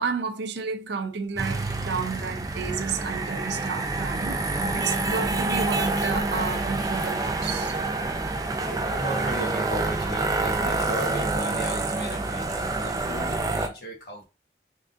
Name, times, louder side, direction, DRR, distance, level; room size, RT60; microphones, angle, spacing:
voice 1, 0.0-7.8 9.0-9.3, right 5 dB, 80° right, 0.5 m, -31 dB
sound 1, 1.3-13.7, right 2 dB, 20° right, 0.4 m, -27 dB
voice 2, 8.6-14.3, equal, 60° left, 1.3 m, -36 dB
3.7 x 3.6 x 2.6 m
head